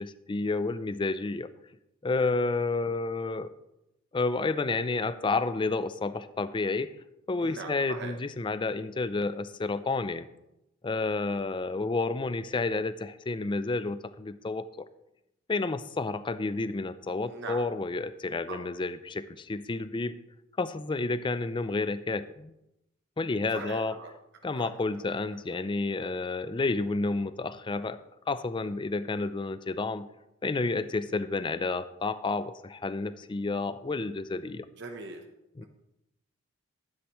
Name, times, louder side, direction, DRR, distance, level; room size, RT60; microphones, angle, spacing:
voice 1, 0.0-1.5 2.0-3.5 4.1-6.9 7.3-10.3 10.8-14.9 15.5-20.1 20.6-22.5 23.2-24.0 24.4-30.1 30.4-34.7 35.6-35.7, left 3 dB, 25° left, 14 dB, 0.4 m, -30 dB
voice 2, 7.4-8.1 17.3-17.6 18.5-18.7 23.5-24.1 24.5-24.7 25.1-25.2 34.8-35.2, right 4 dB, 55° right, 3 dB, 0.9 m, -40 dB
11.5 x 9.7 x 3.1 m, 0.87 s
head